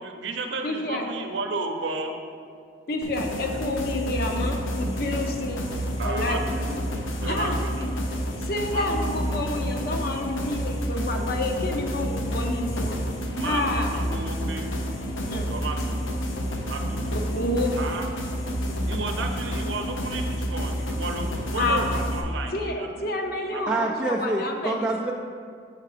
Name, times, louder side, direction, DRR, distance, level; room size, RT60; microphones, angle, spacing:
voice 1, 0.0-2.1 6.0-6.8 7.2-7.9 8.7-9.4 13.4-14.7 15.5-16.2 16.6-17.1 17.8-18.1 18.9-23.2 23.5-23.6, right 3 dB, 70° right, 4 dB, 0.7 m, -33 dB
voice 2, 0.6-1.1 2.9-5.6 6.0-6.4 7.3-7.6 8.4-13.0 13.4-13.9 15.3-15.5 17.1-17.8 21.6-21.9 22.5-24.9, left 2 dB, 50° left, 3 dB, 0.6 m, -29 dB
sound 1, 3.0-22.2, equal, 85° left, 0.8 m, -29 dB
voice 3, 23.7-25.1, right 2 dB, 10° right, -4 dB, 0.3 m, -26 dB
6.5 x 4.6 x 4.9 m, 2.3 s
head